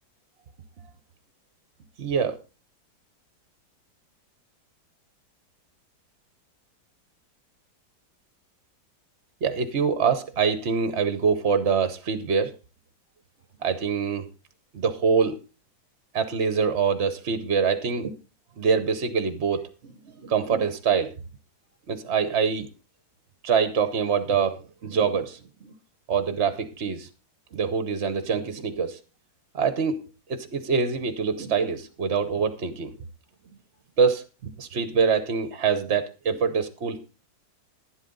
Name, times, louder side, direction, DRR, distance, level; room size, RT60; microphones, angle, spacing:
voice 1, 2.0-2.4 9.4-12.5 13.6-14.2 14.7-15.4 16.1-18.1 18.6-21.1 21.9-22.7 23.4-25.7 26.1-27.1 27.5-29.0 29.5-30.0 30.3-32.9 34.0-37.0, right 6 dB, 50° right, 11 dB, 0.9 m, -25 dB
11.5 x 11.0 x 3.9 m, 0.32 s
omnidirectional pair, 2.0 m